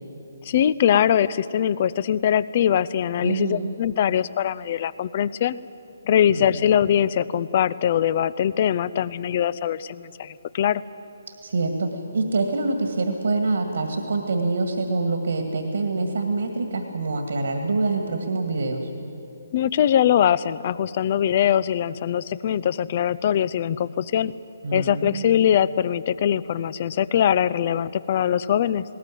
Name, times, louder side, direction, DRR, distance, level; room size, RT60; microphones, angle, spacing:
voice 1, 0.4-5.6 6.0-10.8 19.5-24.3 24.7-28.8, left 9 dB, 45° left, 18 dB, 0.6 m, -22 dB
voice 2, 3.2-3.7 6.3-6.7 11.4-18.9 24.6-25.4, right 3 dB, 70° right, 5 dB, 2.1 m, -25 dB
19.5 x 18.5 x 9.2 m, 2.8 s
figure-of-eight pair, 140°, 0 cm